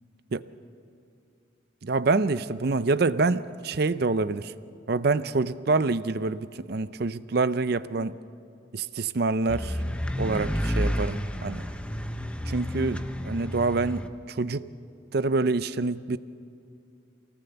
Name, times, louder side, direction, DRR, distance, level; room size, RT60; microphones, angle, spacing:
voice 1, 1.8-4.5 4.9-8.1 8.7-9.8 10.2-11.6 12.5-14.7 15.1-16.2, right 3 dB, 50° right, 15 dB, 0.5 m, -26 dB
sound 1, 9.5-14.1, equal, 5° left, 0.7 m, -30 dB
24.0 x 18.5 x 7.0 m, 2.6 s
head